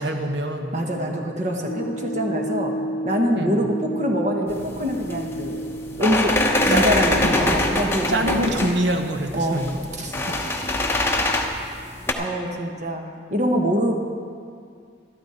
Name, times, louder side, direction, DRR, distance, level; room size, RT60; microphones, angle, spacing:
voice 1, 0.0-0.7 3.3-3.7 6.7-7.5 8.1-9.8 10.3-10.4, right 1 dB, 65° right, 5 dB, 1.1 m, -25 dB
voice 2, 0.7-2.7 3.0-5.6 6.0-6.3 6.6-8.7 9.3-10.2 12.2-13.0 13.3-14.0, equal, 40° right, 2 dB, 1.3 m, -24 dB
sound 1, 1.7-7.2, right 1 dB, 70° left, 0.6 m, -32 dB
sound 2, 4.5-12.1, left 1 dB, 15° left, 0.9 m, -24 dB
13.5 x 12.5 x 4.3 m, 2.2 s
head